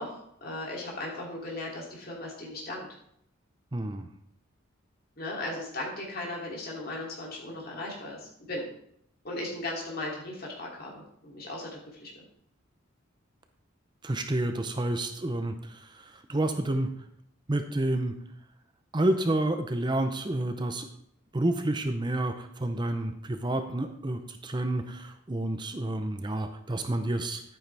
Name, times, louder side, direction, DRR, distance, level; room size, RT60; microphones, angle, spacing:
voice 1, 0.0-2.9 5.2-8.6 9.2-12.1, left 2 dB, 50° left, -3 dB, 2.9 m, -37 dB
voice 2, 3.7-4.1 14.0-16.9 17.5-18.2 18.9-20.9 21.3-27.4, right 1 dB, 20° right, 7 dB, 0.6 m, -29 dB
10.5 x 9.2 x 3.4 m, 0.71 s
head